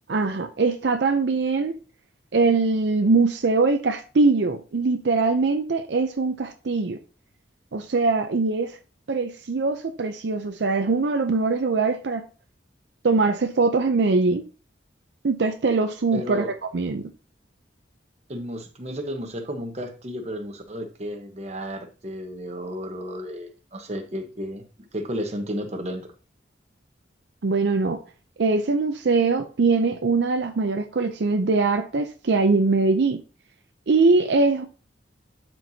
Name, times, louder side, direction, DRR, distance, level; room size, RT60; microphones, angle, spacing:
voice 1, 0.1-1.8 2.3-7.0 7.7-8.8 9.1-12.2 13.0-14.4 15.2-16.5 16.7-17.1 27.4-28.0 28.4-33.2 33.9-34.6, right 3 dB, 70° right, 0.5 m, -22 dB
voice 2, 16.1-16.5 18.3-24.6 24.9-26.1, equal, 35° right, 1.0 m, -33 dB
12.0 x 4.5 x 2.7 m
head